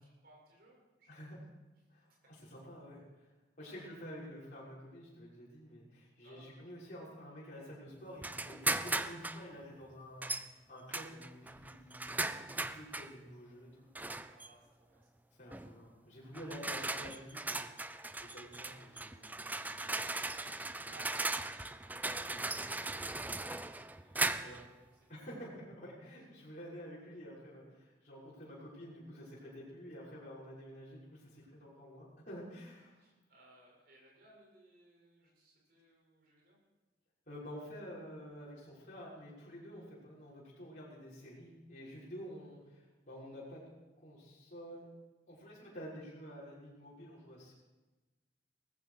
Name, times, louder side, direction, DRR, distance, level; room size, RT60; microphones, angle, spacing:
voice 1, 0.0-1.1 1.5-1.6 3.6-4.0 6.2-6.5 14.3-15.1 20.9-21.9 22.2-24.5 24.8-24.9 27.0-27.2 33.0-36.6, right 2 dB, 55° right, -3 dB, 7.5 m, -62 dB
voice 2, 1.1-1.4 1.9-2.1 2.5-3.3 3.6-13.9 15.4-17.7 18.1-20.0 22.3-22.4 24.4-24.6 25.1-33.0 37.3-43.7 44.0-44.9 45.3-47.5, equal, 45° left, -8 dB, 6.4 m, -50 dB
sound 1, 8.2-9.4 10.2-10.5 10.9-13.1 13.9-14.5 15.5-15.7 16.3-24.7, right 2 dB, 10° right, 0.5 m, -38 dB
19.0 x 15.0 x 5.1 m, 1.1 s
head